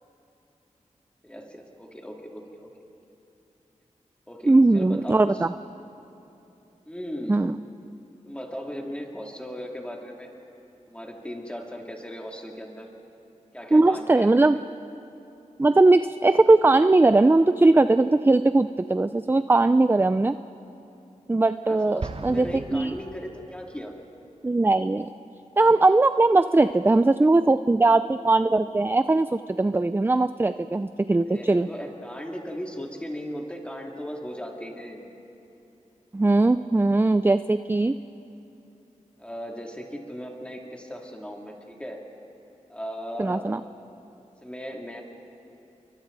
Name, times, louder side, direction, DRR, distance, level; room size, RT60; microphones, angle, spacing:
voice 1, 1.2-2.7 4.3-5.4 6.8-7.5 8.3-10.3 10.9-12.9 13.5-14.3 21.6-23.9 31.0-35.1 39.2-42.0 42.7-43.5 44.4-45.0, equal, 10° left, 0 dB, 2.7 m, -37 dB
voice 2, 4.5-5.5 7.3-7.6 13.7-14.6 15.6-20.4 21.3-22.5 22.7-23.0 24.4-25.1 25.6-31.7 36.1-37.9 43.2-43.6, right 2 dB, 15° right, 12 dB, 0.4 m, -20 dB
Explosion, 22.0-23.8, right 3 dB, 45° right, 0.8 m, -37 dB
29.5 x 23.5 x 4.0 m, 2.9 s
wide cardioid pair, 75°, 13 cm